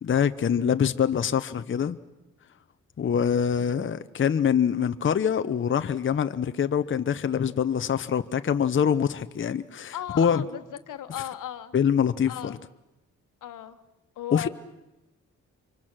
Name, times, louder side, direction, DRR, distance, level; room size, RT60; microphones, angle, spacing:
voice 1, 0.0-2.0 3.0-10.4 11.7-12.6 14.3-14.5, left 8 dB, 40° left, 0.8 m, -24 dB
voice 2, 9.9-10.6 10.9-11.7 12.3-12.6 13.4-13.8 14.2-14.5, left 11 dB, 85° left, 1.3 m, -35 dB
25.0 x 24.5 x 6.1 m
cardioid pair, 75°, 31 cm